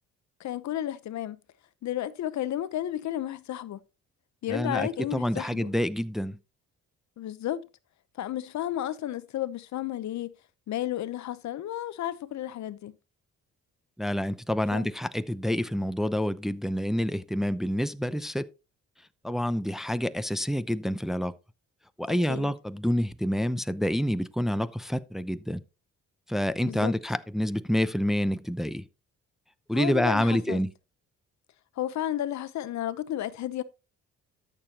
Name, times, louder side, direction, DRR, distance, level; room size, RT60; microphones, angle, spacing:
voice 1, 0.4-1.4 1.8-3.8 4.4-5.7 7.2-7.7 8.2-10.3 10.7-13.0 14.7-14.9 22.1-22.5 26.6-26.9 29.7-30.6 31.8-33.6, left 12 dB, 65° left, 0.8 m, -32 dB
voice 2, 4.5-6.4 14.0-18.5 19.2-21.3 22.0-25.6 26.3-28.8 29.7-30.7, equal, ahead, 0.6 m, -28 dB
13.0 x 6.9 x 2.9 m
cardioid pair, 90°, 30 cm